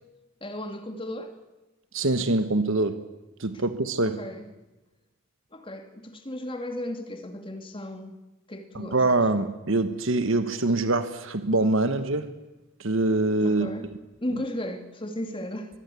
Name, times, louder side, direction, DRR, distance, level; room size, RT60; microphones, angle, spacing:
voice 1, 0.4-1.4 3.5-3.6 4.0-4.4 5.5-8.2 8.5-9.0 13.4-13.9 14.2-15.8, left 1 dB, 25° left, 2.2 m, -35 dB
voice 2, 1.9-3.0 3.4-4.2 8.7-12.3 12.8-13.7, right 2 dB, 60° right, 1.3 m, -24 dB
24.0 x 22.5 x 8.4 m
head